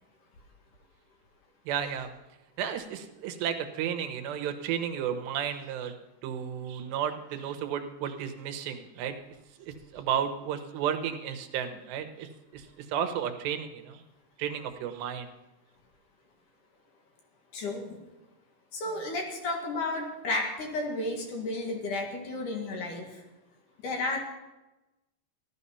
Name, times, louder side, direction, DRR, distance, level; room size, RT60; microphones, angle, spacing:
voice 1, 1.7-2.1 2.6-5.9 6.2-9.2 9.6-14.0 14.4-15.3, right 9 dB, 90° right, 7 dB, 3.3 m, -33 dB
voice 2, 17.5-18.0 18.7-23.2 23.8-24.2, left 2 dB, 55° left, 2 dB, 2.8 m, -32 dB
15.5 x 12.0 x 5.6 m, 1.0 s
omnidirectional pair, 4.8 m